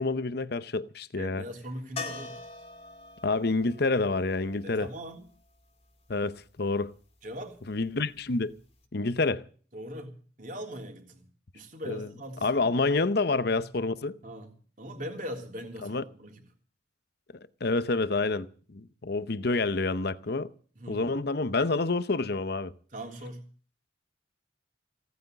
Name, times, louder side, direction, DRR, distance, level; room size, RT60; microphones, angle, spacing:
voice 1, 0.0-1.4 3.2-4.9 6.1-6.9 7.7-8.5 8.9-9.4 11.9-12.1 12.4-14.2 15.8-16.0 17.6-20.5 20.9-22.7, left 3 dB, 55° left, 0.7 m, -28 dB
voice 2, 1.1-2.4 4.6-5.2 7.2-7.6 9.7-11.2 11.5-12.7 14.2-14.5 14.8-16.4 20.7-21.1 22.9-23.4, equal, 40° right, 3.3 m, -40 dB
sound 1, 2.0-5.8 8.5-8.6 8.8-8.9, left 4 dB, 30° left, 2.3 m, -43 dB
17.0 x 9.4 x 7.9 m
head